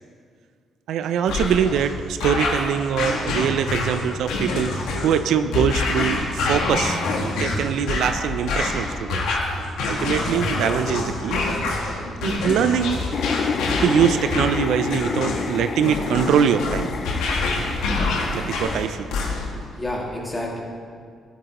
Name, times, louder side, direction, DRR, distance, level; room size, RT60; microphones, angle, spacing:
voice 1, 0.9-7.0 7.4-9.3 9.9-11.4 12.2-13.0 13.8-16.9 18.3-19.1, right 8 dB, 80° right, 10 dB, 0.4 m, -23 dB
sound 1, 1.3-19.7, left 2 dB, 90° left, 1.2 m, -26 dB
sound 2, 13.1-18.9, left 5 dB, 45° left, 0.3 m, -29 dB
voice 2, 19.2-20.6, left 1 dB, 15° left, -3 dB, 2.1 m, -31 dB
12.5 x 8.3 x 2.9 m, 2.1 s
cardioid pair, 90°, 0 cm